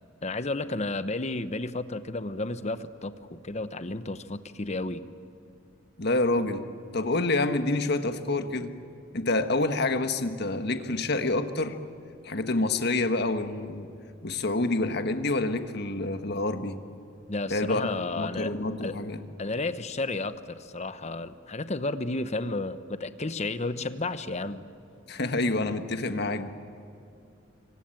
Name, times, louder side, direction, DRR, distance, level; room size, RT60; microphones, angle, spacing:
voice 1, 0.2-5.0 17.3-18.5 18.8-19.0 19.4-24.6, left 2 dB, 35° left, 12 dB, 1.0 m, -32 dB
voice 2, 6.0-6.6 6.9-8.7 9.1-11.8 12.2-13.9 14.2-16.8 17.5-19.2 25.1-26.5, left 2 dB, 55° left, 8 dB, 1.4 m, -27 dB
26.0 x 25.5 x 9.1 m, 2.7 s
head